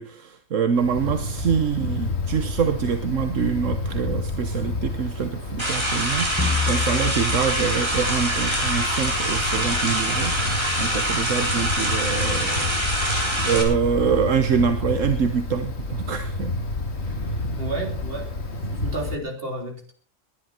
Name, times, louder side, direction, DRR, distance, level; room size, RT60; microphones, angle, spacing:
voice 1, 0.0-16.5 17.2-17.5, right 7 dB, 75° right, 8 dB, 1.4 m, -25 dB
Wind, 0.7-19.1, left 2 dB, 55° left, 2.2 m, -30 dB
sound 1, 5.6-13.6, right 1 dB, 20° right, 4.0 m, -25 dB
sound 2, 6.4-9.1, left 5 dB, 15° left, 1.0 m, -29 dB
voice 2, 17.6-18.3 18.7-19.9, right 2 dB, 45° right, 3 dB, 3.6 m, -31 dB
21.5 x 11.0 x 4.5 m, 0.43 s
omnidirectional pair, 1.3 m